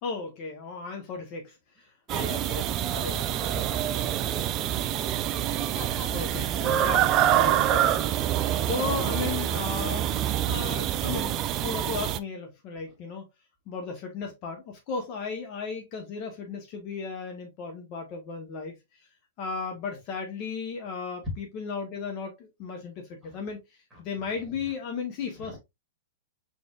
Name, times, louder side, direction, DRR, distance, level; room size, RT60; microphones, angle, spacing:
voice 1, 0.0-1.5 2.2-2.6 3.0-3.2 6.1-10.1 10.5-13.2 13.7-18.7 19.4-23.6 24.0-25.6, left 5 dB, 40° left, 0.9 m, -35 dB
voice 2, 2.1-6.1 7.5-8.1 8.4-8.9 12.9-13.0 19.9-20.0 23.2-23.4 23.9-24.7 25.3-25.6, equal, 5° right, 2.0 m, -44 dB
sound 1, 2.1-12.2, right 11 dB, 30° right, 0.3 m, -26 dB
4.2 x 3.3 x 2.3 m
hypercardioid pair, 135°, 0 cm